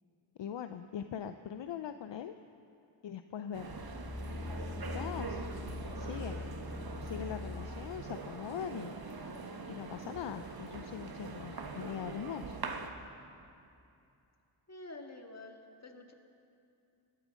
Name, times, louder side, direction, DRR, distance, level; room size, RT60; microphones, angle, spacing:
voice 1, 0.4-2.3 3.0-3.9 4.8-5.4 6.0-6.5 7.0-12.6, left 9 dB, 65° left, 9 dB, 0.6 m, -42 dB
sound 1, 3.5-12.9, right 4 dB, 50° right, 1.3 m, -43 dB
sound 2, 3.7-8.1 8.6-8.7, left 3 dB, 10° left, 0.3 m, -42 dB
voice 2, 14.7-16.1, left 2 dB, 35° left, 3 dB, 1.7 m, -48 dB
18.0 x 12.0 x 5.2 m, 2.6 s
cardioid pair, 50°, 48 cm